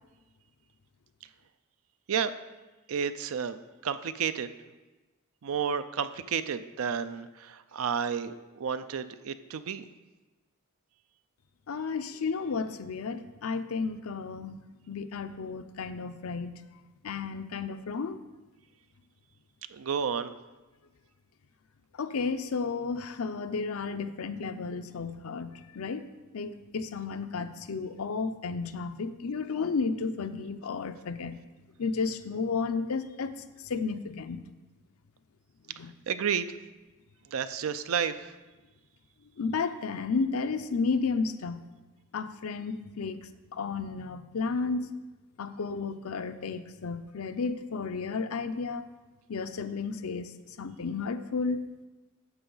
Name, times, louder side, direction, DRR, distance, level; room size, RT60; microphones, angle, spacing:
voice 1, 2.9-4.5 5.4-9.8 19.7-20.3 36.1-36.5 37.3-38.3, right 7 dB, 70° right, 12 dB, 0.4 m, -31 dB
voice 2, 11.7-14.5 14.9-16.6 17.0-18.2 21.9-26.1 26.3-31.4 31.8-33.3 33.6-34.4 35.8-35.9 39.4-41.7 42.1-44.9 45.4-48.9 49.3-50.3 50.6-51.7, left 4 dB, 85° left, 10 dB, 0.5 m, -32 dB
9.8 x 7.0 x 3.9 m, 1.2 s
head